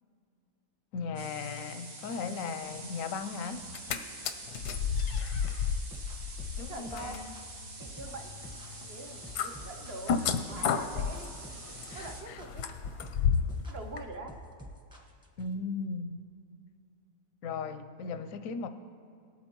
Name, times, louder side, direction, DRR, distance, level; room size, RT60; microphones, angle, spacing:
voice 1, 0.9-3.7 6.6-7.3 11.9-12.4 15.4-16.2 17.4-18.7, left 5 dB, 70° left, 9 dB, 0.9 m, -37 dB
sound 1, 1.2-12.2, right 3 dB, 90° right, 2.0 m, -46 dB
sound 2, 3.6-4.0 4.2-13.6 14.0-14.1, left 7 dB, 85° left, 1.2 m, -33 dB
sound 3, 5.4-15.5, equal, 5° right, 0.9 m, -49 dB
voice 2, 6.7-7.2 7.8-8.3 8.8-10.2 10.5-11.3 11.9-12.6 13.7-14.4, right 2 dB, 55° right, 4 dB, 0.7 m, -44 dB
19.5 x 8.7 x 3.0 m, 2.5 s
omnidirectional pair, 1.7 m